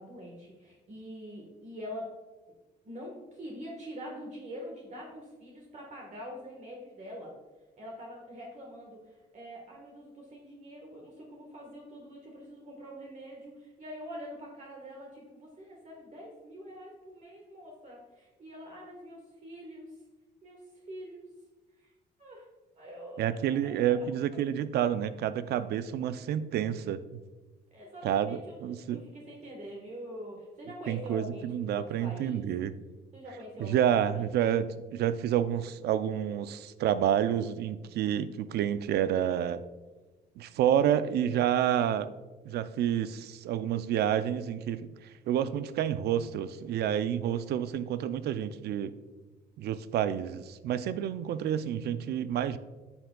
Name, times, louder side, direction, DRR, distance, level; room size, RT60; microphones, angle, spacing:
voice 1, 0.0-2.1 2.8-7.3 7.8-20.0 20.4-21.2 21.7-21.9 22.2-22.5 22.7-24.1 27.7-32.5 33.1-34.3, equal, 45° right, -1 dB, 1.4 m, -45 dB
voice 2, 23.2-27.0 28.0-29.0 30.9-32.7 33.6-34.6 34.9-39.6 40.4-42.1 42.4-44.9 45.3-48.9 49.6-52.6, right 10 dB, 75° right, 14 dB, 0.4 m, -29 dB
9.6 x 6.9 x 2.3 m, 1.2 s
cardioid pair, 115°, 17 cm